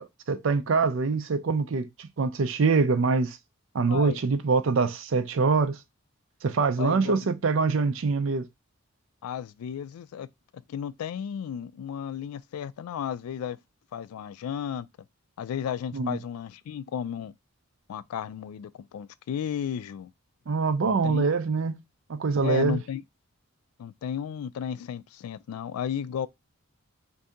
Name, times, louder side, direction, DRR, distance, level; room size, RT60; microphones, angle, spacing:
voice 1, 0.0-3.4 3.7-5.8 6.4-8.5 15.9-16.2 20.5-21.8 22.1-22.8, right 4 dB, 60° right, 0.4 m, -24 dB
voice 2, 3.9-4.2 6.8-7.3 9.2-10.3 10.5-13.6 13.9-14.9 15.4-17.3 17.9-20.1 20.8-21.3 22.4-23.0 23.8-26.3, left 8 dB, 90° left, 0.3 m, -34 dB
2.7 x 2.6 x 3.4 m
head